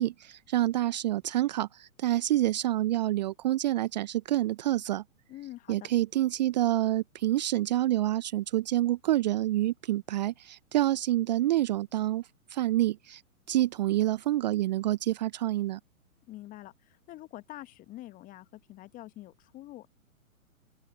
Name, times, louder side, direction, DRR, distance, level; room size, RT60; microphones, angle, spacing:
voice 1, 0.0-5.0 5.7-13.2 13.5-15.8, right 14 dB, 30° right, 0.7 m, -27 dB
voice 2, 5.3-5.9 16.3-19.9, left 16 dB, 20° left, 1.5 m, -46 dB
open air
figure-of-eight pair, 120°, 42 cm